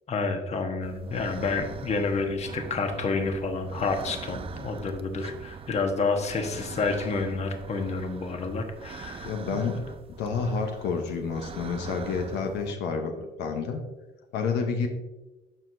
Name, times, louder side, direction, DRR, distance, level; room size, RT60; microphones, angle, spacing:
voice 1, 0.1-9.8, left 4 dB, 40° left, 5 dB, 1.1 m, -29 dB
sound 1, 0.8-12.7, right 6 dB, 35° right, 0.5 m, -42 dB
voice 2, 9.2-9.9 10.2-13.8 14.3-14.9, left 5 dB, 85° left, 4 dB, 1.0 m, -29 dB
13.5 x 4.8 x 2.7 m, 1.1 s
cardioid pair, 110°, 17 cm